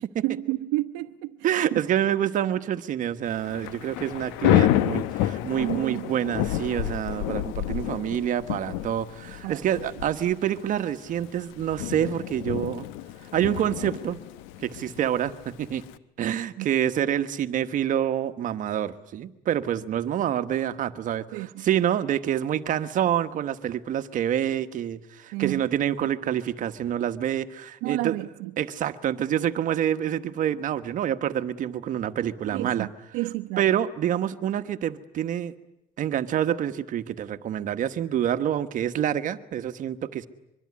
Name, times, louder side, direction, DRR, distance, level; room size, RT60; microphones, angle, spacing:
voice 1, 0.0-1.4 1.7-1.8 5.6-6.2 9.4-9.9 16.6-16.7 21.3-21.7 25.3-25.6 27.8-28.5 32.5-33.7, right 19 dB, 75° right, 0.9 m, -31 dB
voice 2, 1.4-12.9 13.3-14.2 14.6-15.8 16.2-28.2 28.6-32.9 33.6-35.5 36.0-40.3, right 10 dB, 40° right, 1.3 m, -27 dB
Thunder / Rain, 3.3-16.0, left 13 dB, 75° left, 1.1 m, -29 dB
24.0 x 23.5 x 9.7 m
cardioid pair, 140°, 20 cm